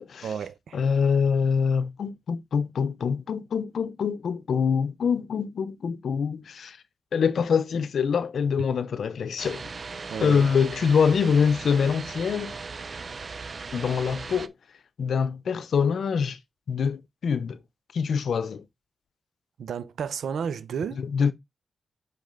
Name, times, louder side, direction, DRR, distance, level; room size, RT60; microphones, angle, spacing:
voice 1, 0.2-0.8 10.1-10.5 19.6-21.0, right 7 dB, 90° right, 0.7 m, -32 dB
voice 2, 0.7-6.8 7.1-9.6 10.2-12.5 13.7-14.5 15.0-16.4 16.7-17.6 17.9-18.6 21.0-21.3, left 6 dB, 80° left, 0.7 m, -25 dB
sound 1, 9.4-14.5, right 4 dB, 50° right, 0.7 m, -38 dB
6.0 x 5.3 x 3.7 m
cardioid pair, 60°, 0 cm